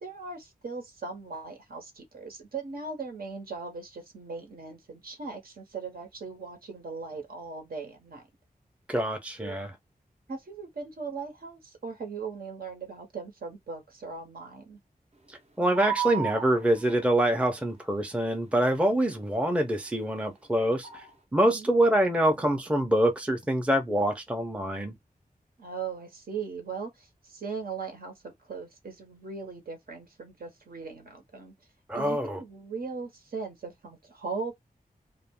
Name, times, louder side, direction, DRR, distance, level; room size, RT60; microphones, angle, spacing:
voice 1, 0.0-8.2 9.4-9.5 10.3-14.8 21.4-21.7 25.6-31.5 31.9-34.5, right 4 dB, 70° right, 0.9 m, -39 dB
voice 2, 8.9-9.7 15.6-21.0 21.3-24.9 31.9-32.4, right 1 dB, 10° right, 0.5 m, -25 dB
sound 1, 15.7-17.1 20.8-21.1, right 9 dB, 45° right, 0.7 m, -32 dB
2.3 x 2.1 x 3.4 m
wide cardioid pair, 110°, 16 cm